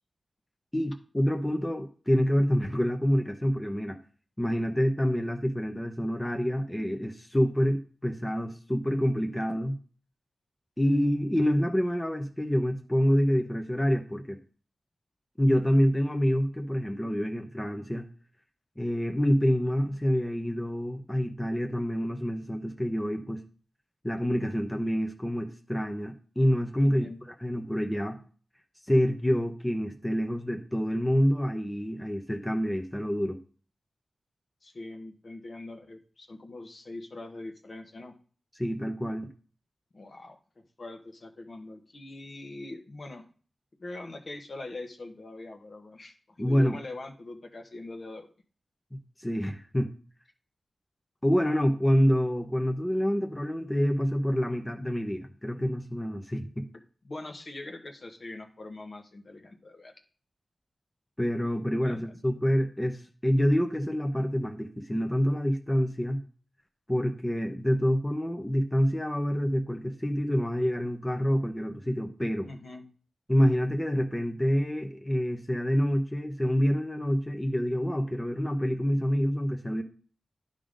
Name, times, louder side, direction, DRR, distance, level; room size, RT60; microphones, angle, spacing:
voice 1, 0.7-4.0 4.4-9.8 10.8-14.4 15.4-18.1 18.8-23.5 24.0-28.2 28.8-33.4 38.6-39.3 46.4-46.8 48.9-49.9 51.2-56.7 61.2-66.2 66.9-72.5 73.3-79.8, equal, 10° left, 5 dB, 0.8 m, -27 dB
voice 2, 26.8-27.2 34.6-38.1 39.9-40.4 40.8-43.2 43.8-48.3 57.0-59.9 61.8-62.1 72.5-72.9, left 2 dB, 50° left, 4 dB, 1.2 m, -42 dB
10.5 x 3.8 x 5.1 m, 0.40 s
wide cardioid pair, 85°, 0 cm